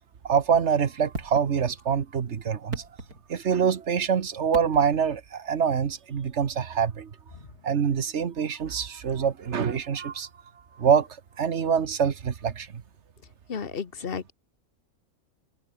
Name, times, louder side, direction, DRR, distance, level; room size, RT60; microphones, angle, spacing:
voice 1, 0.2-2.9 3.3-7.1 7.6-10.3 10.8-11.1 11.4-12.8, right 7 dB, 50° right, 1.4 m, -25 dB
sound 1, 1.1-2.0 2.5-3.7 4.5-5.2 6.7-6.8, right 2 dB, 90° right, 6.7 m, -40 dB
voice 2, 13.5-14.3, left 6 dB, 40° left, 1.5 m, -33 dB
omnidirectional pair, 1.5 m